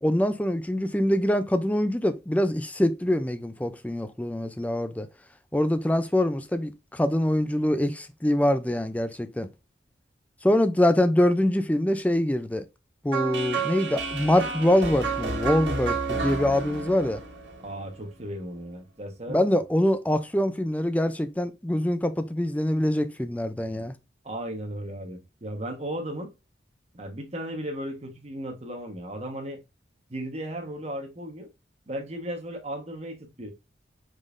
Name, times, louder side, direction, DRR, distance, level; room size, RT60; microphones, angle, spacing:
voice 1, 0.0-5.1 5.5-9.5 10.4-12.6 13.0-17.2 19.3-23.9, left 1 dB, 10° left, 0.4 m, -24 dB
sound 1, 13.1-18.1, right 4 dB, 75° right, 1.7 m, -31 dB
voice 2, 17.6-19.4 24.2-26.3 26.9-29.6 30.1-31.5 31.9-33.5, right 1 dB, 35° right, 1.3 m, -35 dB
5.2 x 3.8 x 2.5 m
head